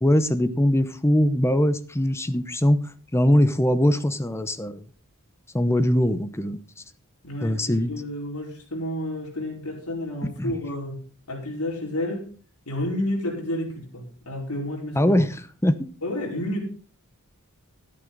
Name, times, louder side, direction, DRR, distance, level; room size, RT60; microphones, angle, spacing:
voice 1, 0.0-2.8 3.1-4.8 5.5-6.6 7.4-7.9 10.4-10.5 15.0-15.3 15.6-15.8, left 1 dB, 10° left, 12 dB, 0.8 m, -21 dB
voice 2, 7.2-11.0 11.3-12.3 12.6-15.1 16.0-16.7, left 1 dB, 80° left, -1 dB, 4.9 m, -30 dB
12.5 x 11.0 x 4.0 m, 0.38 s
head